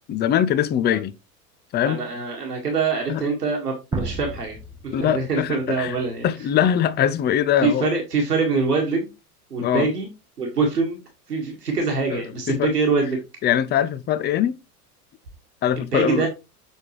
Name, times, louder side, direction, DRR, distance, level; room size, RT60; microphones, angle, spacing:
voice 1, 0.1-1.1 1.7-2.0 3.1-3.2 4.9-6.0 6.2-7.9 9.6-9.9 12.1-12.2 12.5-12.7 13.4-14.6 15.6-16.3, left 10 dB, 20° left, 0.6 m, -22 dB
voice 2, 1.8-4.6 4.8-6.3 7.6-9.1 9.5-10.1 10.4-11.0 11.3-13.2 15.9-16.3, right 4 dB, 85° right, 1.9 m, -24 dB
sound 1, 3.9-6.9, right 3 dB, 10° right, 0.9 m, -34 dB
8.0 x 5.9 x 3.1 m
figure-of-eight pair, 80°, 46 cm